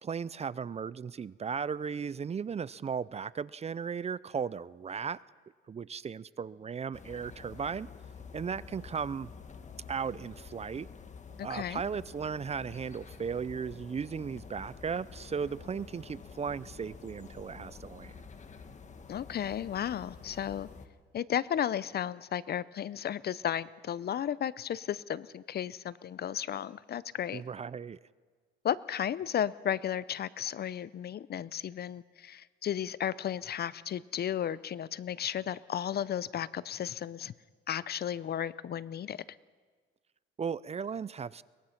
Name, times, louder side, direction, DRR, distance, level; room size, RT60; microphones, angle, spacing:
voice 1, 0.0-5.2 5.7-7.9 8.3-9.3 9.9-10.9 11.4-18.1 27.3-28.0 40.4-41.4, right 6 dB, 35° right, 19 dB, 0.5 m, -36 dB
sound 1, 6.9-20.9, left 5 dB, 35° left, 1.6 m, -49 dB
voice 2, 11.4-11.8 19.1-20.7 21.1-27.4 28.6-37.3 37.7-39.2, left 10 dB, 55° left, 19 dB, 0.6 m, -34 dB
23.0 x 21.0 x 5.9 m, 1.5 s
cardioid pair, 90°, 20 cm